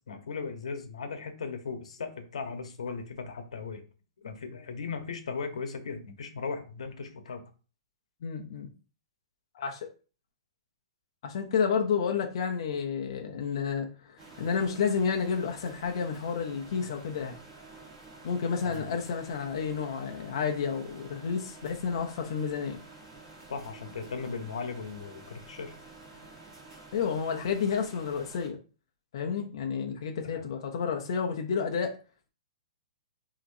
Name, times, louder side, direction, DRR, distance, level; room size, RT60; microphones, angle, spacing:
voice 1, 0.1-3.8 4.2-7.4 18.6-18.9 23.5-25.7 30.2-30.5, left 5 dB, 85° left, 7 dB, 1.0 m, -37 dB
voice 2, 8.2-8.7 9.5-9.9 11.2-17.4 18.2-22.8 26.9-28.6 29.1-32.0, left 6 dB, 50° left, 3 dB, 0.6 m, -30 dB
sound 1, 14.2-28.5, right 3 dB, 15° right, 1.1 m, -50 dB
6.8 x 2.9 x 2.7 m, 0.36 s
hypercardioid pair, 165°, 3 cm